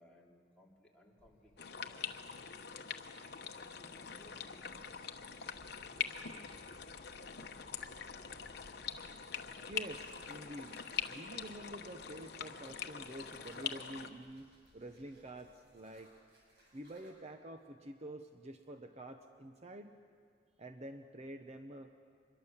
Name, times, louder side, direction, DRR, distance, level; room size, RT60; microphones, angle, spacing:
voice 1, 0.0-2.3 3.4-5.1 5.7-6.7, left 1 dB, 5° left, -4 dB, 2.9 m, -63 dB
sound 1, 1.2-15.5, equal, 35° left, 3.0 m, -65 dB
sound 2, 1.6-14.1, left 7 dB, 55° left, 1.0 m, -44 dB
sound 3, 9.3-17.1, right 1 dB, 65° right, 6.6 m, -65 dB
voice 2, 9.6-16.1 16.7-20.0 20.6-21.9, right 1 dB, 35° right, 6 dB, 0.8 m, -48 dB
25.0 x 22.0 x 7.2 m, 2.4 s
head